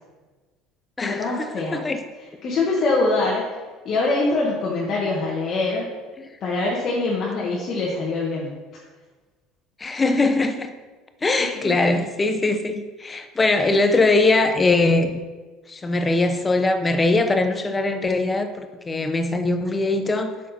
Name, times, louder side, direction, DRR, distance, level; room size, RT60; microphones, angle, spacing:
voice 1, 1.0-1.8 2.4-3.6 3.8-5.9 6.4-8.5 11.4-11.7, left 3 dB, 40° left, -4 dB, 1.5 m, -24 dB
voice 2, 9.8-10.7 11.2-15.1 15.7-20.3, left 2 dB, 15° left, 7 dB, 0.6 m, -21 dB
8.1 x 6.4 x 4.2 m, 1.3 s
cardioid pair, 135°, 0 cm